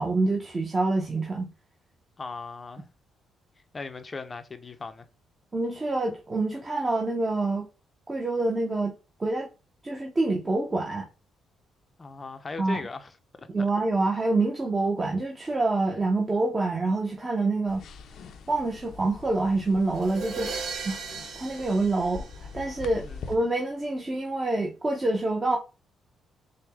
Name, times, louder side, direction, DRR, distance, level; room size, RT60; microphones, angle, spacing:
voice 1, 0.0-1.5 5.5-7.7 8.1-8.9 9.2-9.5 9.8-11.1 12.6-12.8 13.5-17.8 18.5-20.5 20.8-21.0 21.4-22.2 22.5-25.6, right 2 dB, 25° right, 0.8 m, -26 dB
voice 2, 2.2-2.9 3.7-5.1 12.0-13.1 13.4-13.7 22.9-23.2, left 4 dB, 30° left, 0.6 m, -38 dB
sound 1, 17.7-23.4, left 5 dB, 70° left, 0.6 m, -44 dB
sound 2, 19.9-22.9, right 5 dB, 65° right, 1.1 m, -37 dB
4.8 x 2.2 x 3.4 m
cardioid pair, 90°, 0 cm